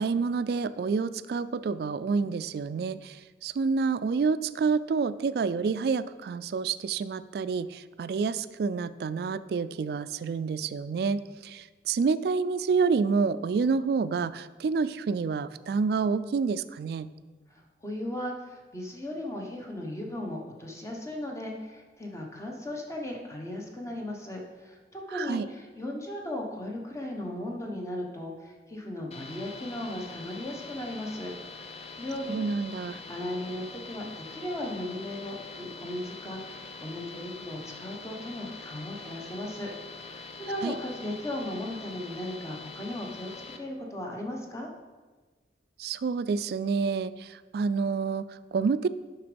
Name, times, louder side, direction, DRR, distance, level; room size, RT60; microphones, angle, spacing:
voice 1, 0.0-17.1 25.1-25.5 32.3-33.0 40.6-40.7 45.8-48.9, right 5 dB, 60° right, 15 dB, 0.3 m, -28 dB
voice 2, 17.5-31.3 31.6-32.3 33.1-44.7, left 1 dB, 15° left, 0 dB, 1.0 m, -37 dB
sound 1, 29.1-43.6, left 3 dB, 35° left, 0.5 m, -44 dB
6.8 x 6.0 x 5.2 m, 1.3 s
head